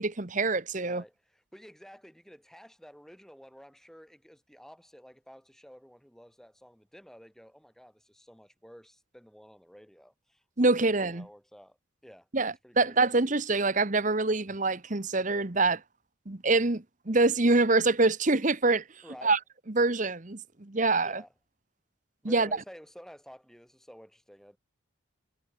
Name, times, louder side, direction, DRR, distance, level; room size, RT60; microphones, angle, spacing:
voice 1, 0.0-1.0 10.6-11.2 12.3-15.8 16.3-18.8 19.2-19.4 19.7-21.2 22.2-22.5, right 3 dB, 40° right, 1.2 m, -25 dB
voice 2, 0.8-11.8 12.0-13.1 19.0-19.4 21.0-21.3 22.2-24.6, equal, ahead, 6.5 m, -52 dB
head